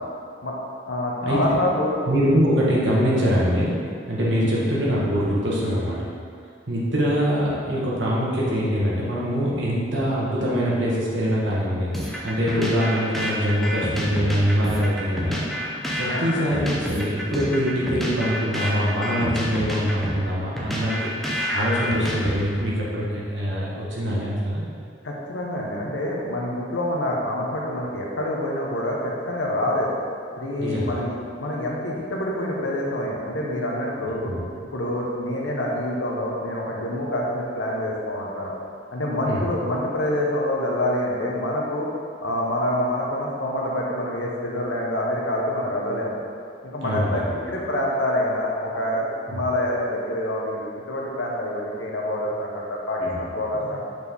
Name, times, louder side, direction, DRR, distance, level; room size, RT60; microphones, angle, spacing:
voice 1, 0.9-1.9 4.4-4.6 16.1-16.3 25.0-29.9 30.3-34.3 34.6-38.5 38.9-41.9 42.2-46.2 46.6-53.9, left 1 dB, 90° left, -3 dB, 1.1 m, -26 dB
voice 2, 2.1-3.8 4.1-6.1 6.7-15.4 16.0-21.1 21.5-24.6 30.6-31.0 34.2-34.4 39.3-39.4 46.8-47.4 49.3-49.4 53.0-53.3 53.5-53.7, equal, 75° right, -6 dB, 1.5 m, -23 dB
sound 1, 11.9-22.7, equal, ahead, 0.7 m, -29 dB
6.5 x 4.3 x 3.6 m, 2.3 s
head